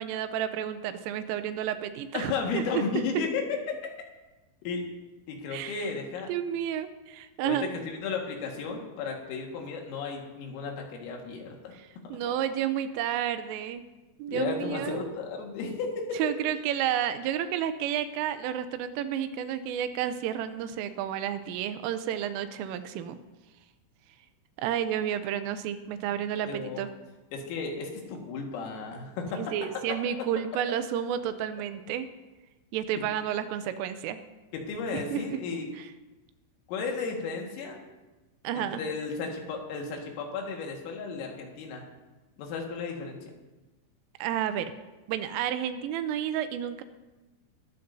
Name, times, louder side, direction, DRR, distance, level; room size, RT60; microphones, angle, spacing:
voice 1, 0.0-2.8 5.5-5.9 6.3-7.7 11.8-13.8 14.2-15.1 16.2-23.2 24.6-26.9 29.4-32.1 32.7-34.2 34.9-35.4 38.4-38.8 44.2-44.7 45.1-46.8, right 10 dB, 85° right, 10 dB, 3.2 m, -31 dB
voice 2, 2.1-3.6 4.6-4.8 5.3-6.3 7.4-11.7 12.2-12.3 14.3-15.9 26.4-26.8 27.3-29.7 34.5-35.7 36.7-37.8 38.6-41.9 42.4-43.3, left 5 dB, 80° left, 1 dB, 4.4 m, -34 dB
20.5 x 13.5 x 2.7 m, 1.1 s
omnidirectional pair, 5.9 m